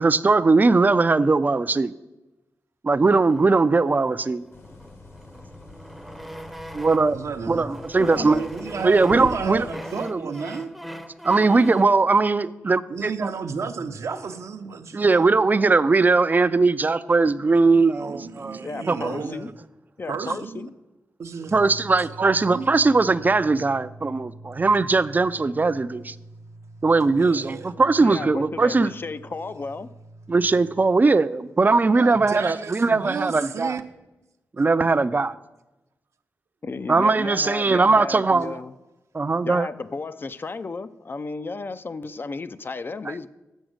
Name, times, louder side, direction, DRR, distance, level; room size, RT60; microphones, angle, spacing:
voice 1, 0.0-1.9 2.8-4.4 6.8-7.2 7.5-8.4 8.8-9.7 10.0-10.2 11.2-13.3 14.9-19.3 21.5-26.1 26.8-28.9 30.3-33.8 34.6-35.3 36.9-38.6 39.1-39.7 43.1-43.2, right 3 dB, 35° right, 0.4 m, -20 dB
sound 1, 3.0-7.2 7.7-12.0, equal, ahead, 0.7 m, -40 dB
sound 2, 4.5-9.7, left 3 dB, 60° left, 1.4 m, -44 dB
voice 2, 7.1-7.7 8.2-10.7 12.9-15.4 17.4-17.5 17.9-19.5 20.1-20.7 21.2-21.6 22.2-22.7 27.2-27.7 31.9-33.8 36.7-36.8, right 5 dB, 70° right, 0.7 m, -32 dB
voice 3, 8.0-8.4 18.6-19.5 20.0-20.7 28.0-29.9 36.6-38.7 39.5-43.3, left 3 dB, 40° left, 0.4 m, -33 dB
sound 3, 21.5-30.8, right 1 dB, 80° left, 1.9 m, -45 dB
7.1 x 6.3 x 6.4 m
cardioid pair, 50°, 5 cm